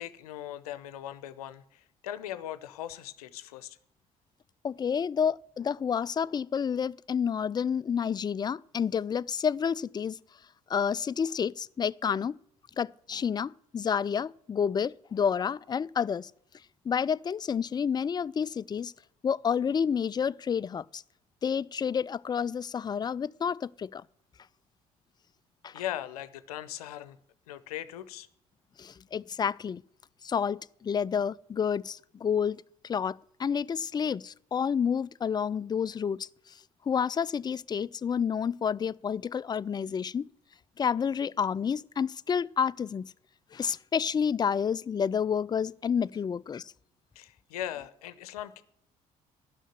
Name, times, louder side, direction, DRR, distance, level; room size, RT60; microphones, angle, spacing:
voice 1, 0.0-3.8 25.7-27.2 27.5-28.3 47.2-48.6, left 12 dB, 85° left, 0.6 m, -39 dB
voice 2, 4.6-10.2 10.7-12.4 12.8-16.3 16.9-18.9 19.2-21.0 21.4-24.0 25.6-25.7 28.8-29.8 30.2-36.3 36.9-40.3 40.8-43.1 43.5-46.7, left 7 dB, 20° left, 0.4 m, -29 dB
11.5 x 6.4 x 9.0 m
hypercardioid pair, 50°, 19 cm